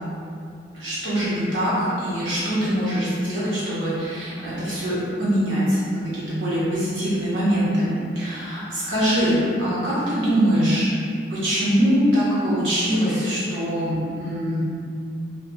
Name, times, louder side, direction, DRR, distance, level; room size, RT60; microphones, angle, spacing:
voice 1, 0.7-10.9 11.3-14.6, equal, 85° right, -10 dB, 1.3 m, -23 dB
2.8 x 2.4 x 3.6 m, 2.4 s
head